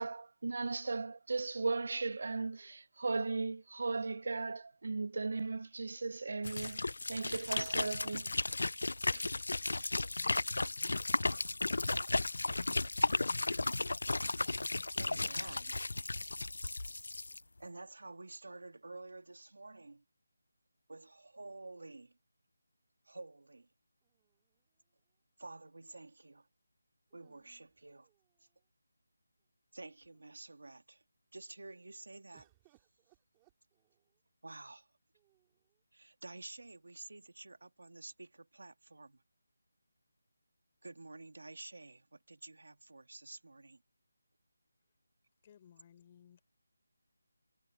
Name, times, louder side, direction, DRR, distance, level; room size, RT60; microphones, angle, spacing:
voice 1, 0.0-6.8 7.1-8.3 9.1-9.3, right 3 dB, 45° right, 0.4 m, -37 dB
sound 1, 6.4-17.4, left 2 dB, 70° left, 0.3 m, -34 dB
voice 2, 14.8-15.8 17.6-20.0 20.9-22.2 23.1-23.7 25.4-26.5 27.1-28.1 28.4-28.5 29.7-31.0 31.3-32.5 34.4-34.9 35.9-39.2 40.8-43.8, right 2 dB, 80° right, 1.8 m, -50 dB
sound 2, 24.0-25.1 27.1-28.6 29.4-29.5 29.8-30.4 32.3-34.2 35.1-35.8, right 20 dB, 10° right, 2.6 m, -72 dB
voice 3, 45.4-46.4, left 9 dB, 20° left, 4.1 m, -60 dB
figure-of-eight pair, 180°, 0 cm